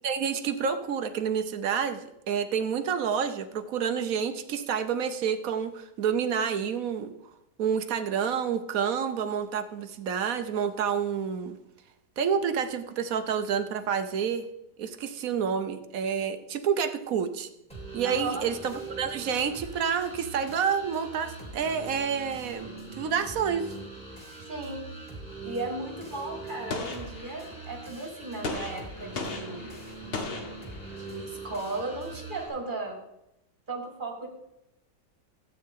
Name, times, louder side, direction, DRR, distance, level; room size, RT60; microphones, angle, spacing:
voice 1, 0.0-2.0 2.3-7.1 7.6-11.6 12.2-14.5 14.8-17.5 17.9-22.7 23.0-23.7, right 7 dB, 60° right, 9 dB, 1.1 m, -29 dB
sound 1, 17.7-32.5, right 3 dB, 5° left, 2.7 m, -42 dB
voice 2, 18.0-18.5 24.4-24.9 25.4-29.7 30.9-33.0 33.7-34.3, right 2 dB, 30° right, 2 dB, 1.9 m, -36 dB
Gunshot gunfire, 26.7-27.8 28.4-31.2, left 3 dB, 40° left, 1.0 m, -37 dB
13.0 x 8.6 x 3.7 m, 0.85 s
omnidirectional pair, 1.8 m